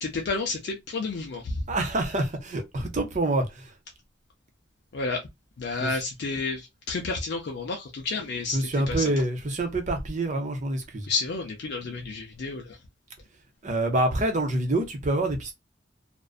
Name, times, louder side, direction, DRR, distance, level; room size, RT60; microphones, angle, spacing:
voice 1, 0.0-1.6 4.9-5.2 5.6-9.0 11.1-12.8, left 3 dB, 65° left, 0.5 m, -31 dB
voice 2, 1.7-3.7 5.8-6.0 8.5-11.1 13.6-15.5, right 2 dB, 40° right, 0.7 m, -26 dB
2.5 x 2.1 x 2.3 m
head